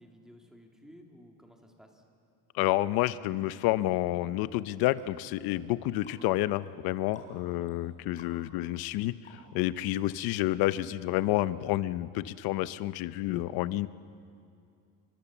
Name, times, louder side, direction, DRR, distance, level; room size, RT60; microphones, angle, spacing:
voice 1, 0.0-2.0 7.4-7.7, equal, ahead, 2 dB, 2.1 m, -55 dB
voice 2, 2.5-13.9, left 16 dB, 85° left, 15 dB, 0.8 m, -29 dB
sound 1, 4.4-9.8 10.3-10.4, left 2 dB, 20° left, 4.3 m, -58 dB
29.5 x 24.5 x 7.2 m, 2.5 s
cardioid pair, 180°, 35 cm